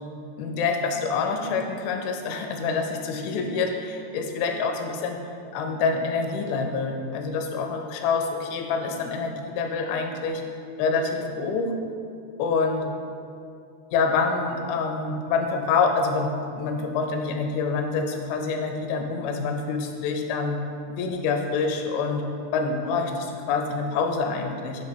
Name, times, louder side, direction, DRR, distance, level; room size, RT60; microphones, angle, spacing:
voice 1, 0.4-3.9 4.1-5.2 5.5-10.4 10.8-11.7 12.4-12.9 13.9-16.3 16.6-20.6 20.9-22.2 22.5-24.8, left 4 dB, 90° left, 4 dB, 3.0 m, -26 dB
7.6 x 2.8 x 5.2 m, 2.4 s
omnidirectional pair, 5.2 m